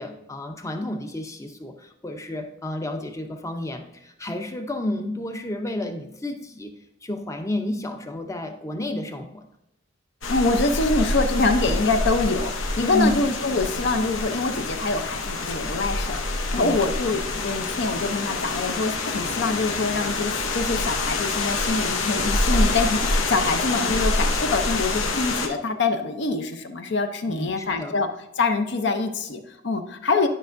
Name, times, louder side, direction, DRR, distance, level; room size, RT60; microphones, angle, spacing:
voice 1, 0.0-6.7 7.0-9.5 12.8-13.2 16.6-16.9 27.3-28.0, left 1 dB, 15° left, 5 dB, 0.5 m, -30 dB
sound 1, 10.2-25.5, left 2 dB, 90° left, 0.8 m, -26 dB
voice 2, 10.3-28.1 28.4-30.3, left 3 dB, 60° left, 7 dB, 0.6 m, -25 dB
10.5 x 5.2 x 2.5 m, 0.84 s
head